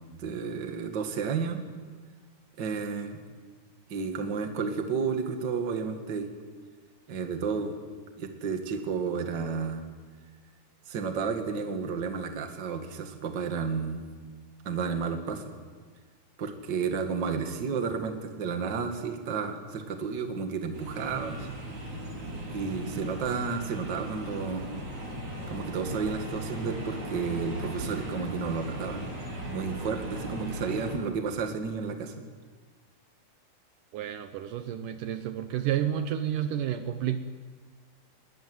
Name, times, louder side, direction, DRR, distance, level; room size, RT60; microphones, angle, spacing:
voice 1, 0.2-1.6 2.6-3.2 3.9-6.3 7.1-7.7 8.2-9.8 10.9-14.1 14.7-15.5 16.4-21.6 22.5-24.7 25.5-29.1 29.4-32.1, right 5 dB, 40° right, 5 dB, 2.0 m, -32 dB
sound 1, 20.7-31.0, right 1 dB, 55° right, 6.6 m, -37 dB
voice 2, 33.9-37.2, right 10 dB, 75° right, 9 dB, 2.4 m, -30 dB
21.0 x 19.0 x 9.5 m, 1.5 s
omnidirectional pair, 4.1 m